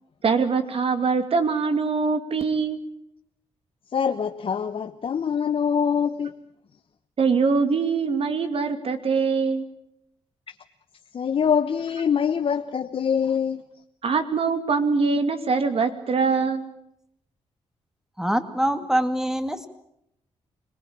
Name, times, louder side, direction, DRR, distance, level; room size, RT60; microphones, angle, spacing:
voice 1, 0.2-2.8 7.2-9.6 14.0-16.7, right 5 dB, 55° right, 2.6 m, -23 dB
voice 2, 3.9-6.3 10.5-10.6 11.1-13.6, left 7 dB, 55° left, 1.0 m, -24 dB
voice 3, 18.2-19.7, equal, 5° right, 2.3 m, -24 dB
25.5 x 19.5 x 8.8 m
cardioid pair, 85°, 11 cm